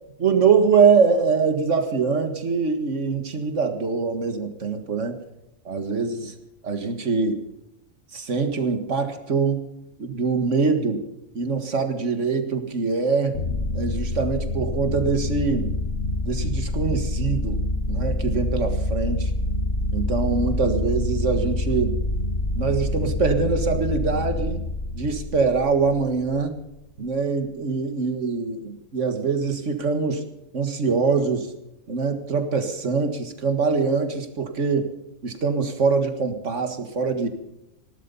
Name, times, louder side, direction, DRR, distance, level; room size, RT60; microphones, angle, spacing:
voice 1, 0.2-5.2 5.7-6.3 6.6-7.4 8.1-9.7 10.0-11.0 11.3-13.4 13.7-15.7 16.2-17.6 17.9-19.3 19.9-22.0 22.6-24.6 24.9-26.6 27.0-30.2 30.5-31.5 31.9-34.9 35.2-37.3, right 5 dB, 65° right, 7 dB, 2.1 m, -23 dB
sound 1, 13.3-26.2, left 1 dB, 60° left, 1.4 m, -26 dB
18.0 x 12.5 x 5.4 m, 0.88 s
omnidirectional pair, 1.3 m